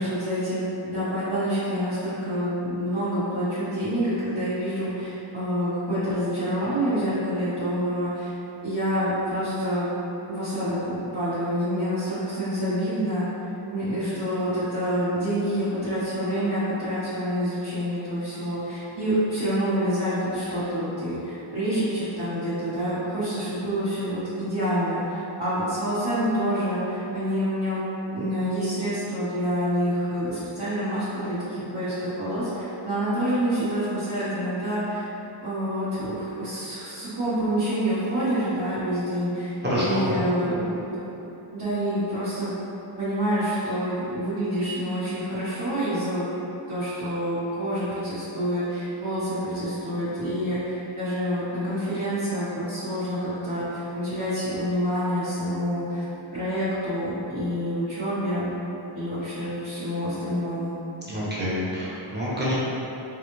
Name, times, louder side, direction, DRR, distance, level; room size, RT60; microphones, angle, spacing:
voice 1, 0.0-8.3 8.6-9.9 10.3-13.2 13.7-35.0 35.4-40.8 41.5-42.5 43.0-46.2 46.7-56.0 56.3-58.5 58.9-60.7, equal, 50° right, -16 dB, 1.3 m, -27 dB
voice 2, 39.6-40.3 61.1-62.5, equal, 20° right, -9 dB, 1.0 m, -27 dB
3.9 x 2.3 x 3.1 m, 3.0 s
wide cardioid pair, 95°, 50 cm